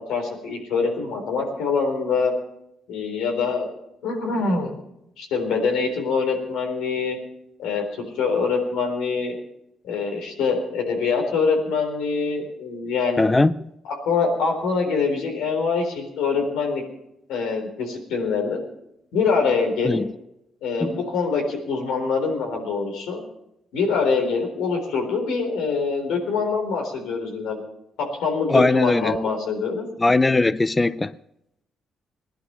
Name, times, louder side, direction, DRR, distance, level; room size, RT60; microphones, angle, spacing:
voice 1, 0.1-2.3 2.9-3.7 4.0-4.7 5.2-7.2 7.6-7.8 8.2-9.3 9.8-13.2 13.9-16.8 17.3-18.6 19.1-20.0 20.6-23.2 23.7-27.6 28.0-29.9, left 4 dB, 90° left, 3.9 m, -24 dB
voice 2, 13.2-13.6 19.8-20.1 20.8-20.9 28.5-29.2 30.0-31.1, left 2 dB, 20° left, 0.5 m, -19 dB
18.5 x 11.5 x 5.6 m
cardioid pair, 90°, 0 cm